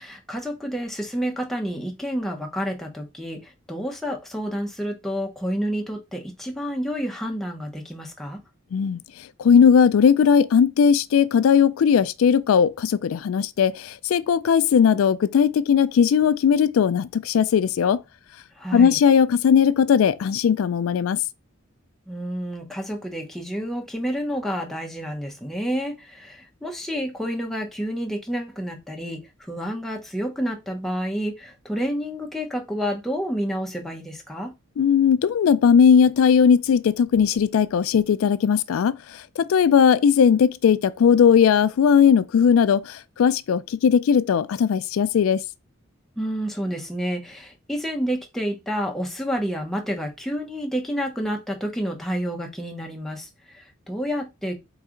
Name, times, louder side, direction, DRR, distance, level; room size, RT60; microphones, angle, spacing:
voice 1, 0.0-8.4 18.6-19.0 22.1-34.5 46.2-54.5, equal, ahead, 0.9 m, -29 dB
voice 2, 9.4-18.0 18.7-21.2 34.8-45.4, left 7 dB, 90° left, 0.3 m, -18 dB
4.0 x 3.1 x 3.7 m
head